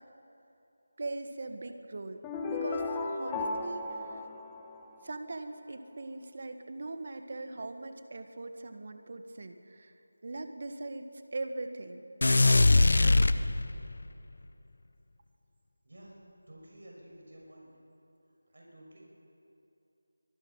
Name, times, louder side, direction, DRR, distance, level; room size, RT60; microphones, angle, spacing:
voice 1, 1.0-4.2 5.0-9.9 10.2-12.0 13.0-13.5, right 2 dB, 50° right, 8 dB, 1.6 m, -41 dB
sound 1, 2.2-5.3, left 3 dB, 10° left, 1.2 m, -35 dB
sound 2, 12.2-14.0, left 2 dB, 60° left, 0.8 m, -22 dB
voice 2, 15.8-16.1 16.5-17.7 18.5-19.0, right 1 dB, 65° right, -2 dB, 6.3 m, -52 dB
25.0 x 20.0 x 5.7 m, 2.8 s
figure-of-eight pair, 165°, 0 cm